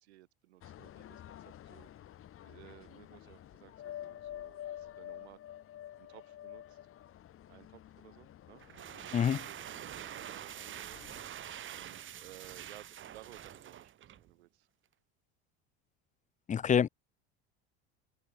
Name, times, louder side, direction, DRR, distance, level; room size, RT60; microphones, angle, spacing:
voice 1, 0.0-1.9 2.4-5.4 6.0-6.8 7.5-9.0 9.4-11.1 11.6-14.7, right 16 dB, 85° right, 5.4 m, -57 dB
sound 1, 0.6-12.8 13.2-13.6, left 11 dB, 45° left, 1.8 m, -50 dB
sound 2, 8.6-14.3, right 10 dB, 40° right, 1.4 m, -46 dB
voice 2, 16.5-16.9, left 8 dB, 25° left, 0.5 m, -26 dB
supercardioid pair, 90°, 32 cm